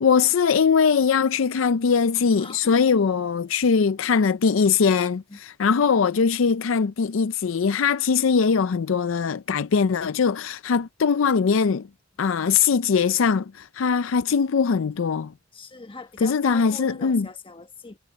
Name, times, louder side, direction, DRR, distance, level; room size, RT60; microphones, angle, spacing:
voice 1, 0.0-11.9 12.2-15.3 16.2-17.3, left 6 dB, 75° left, 0.5 m, -21 dB
voice 2, 2.4-2.8 5.3-5.4 15.5-18.0, left 3 dB, 25° left, 1.3 m, -40 dB
head